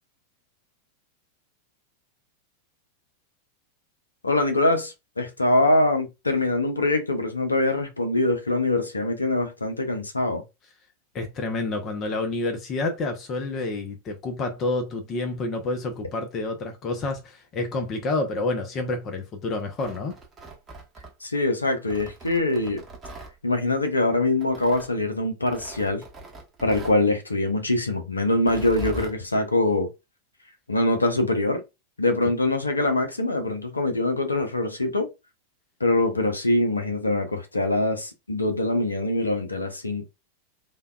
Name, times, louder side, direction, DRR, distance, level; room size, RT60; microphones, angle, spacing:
voice 1, 4.2-10.4 21.2-22.8 23.4-26.0 26.6-29.9 30.7-31.6 32.0-35.1 35.8-40.1, left 2 dB, 80° left, 0.5 m, -23 dB
voice 2, 11.1-20.2, left 2 dB, 30° left, 0.6 m, -29 dB
Tearing, 19.6-21.4 21.9-23.3 24.4-24.9 25.5-27.0 28.3-29.2, right 2 dB, 20° right, 0.8 m, -40 dB
3.3 x 2.2 x 2.2 m
figure-of-eight pair, 90°, 0 cm